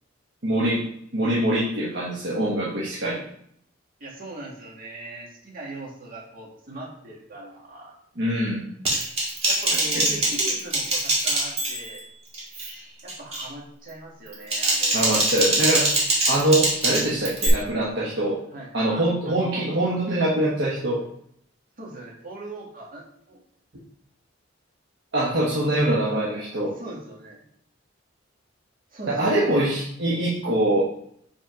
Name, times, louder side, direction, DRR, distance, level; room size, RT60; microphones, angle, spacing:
voice 1, 0.4-0.8 1.1-3.2 8.2-8.6 9.7-10.1 14.9-15.9 16.3-18.4 18.7-21.0 25.1-26.7 29.1-30.8, right 1 dB, 65° right, -6 dB, 1.3 m, -23 dB
voice 2, 4.0-7.9 9.5-12.0 13.0-15.2 18.5-20.0 21.8-23.4 25.5-26.5 26.8-27.4 28.9-29.6, right 2 dB, 50° right, -3 dB, 2.0 m, -40 dB
Typing, 8.8-12.0 12.3-12.7 13.1-13.5 14.3-17.5, right 2 dB, 35° right, 2.0 m, -23 dB
5.7 x 4.1 x 5.0 m, 0.69 s
head